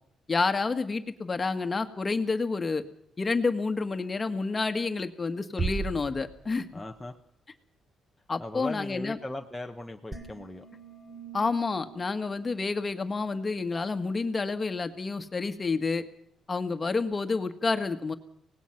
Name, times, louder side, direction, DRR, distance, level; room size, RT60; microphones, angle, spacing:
voice 1, 0.3-2.8 3.2-6.6 8.3-9.2 11.3-16.0 16.5-18.1, left 4 dB, 30° left, 9 dB, 1.7 m, -29 dB
sound 1, 5.6-7.2, right 4 dB, 35° right, 2.1 m, -34 dB
voice 2, 6.7-7.1 8.4-10.6, left 2 dB, 10° left, 2 dB, 1.2 m, -38 dB
sound 2, 10.1-13.5, right 5 dB, 20° right, 3.4 m, -47 dB
24.5 x 18.5 x 6.0 m, 0.68 s
cardioid pair, 90°, 0 cm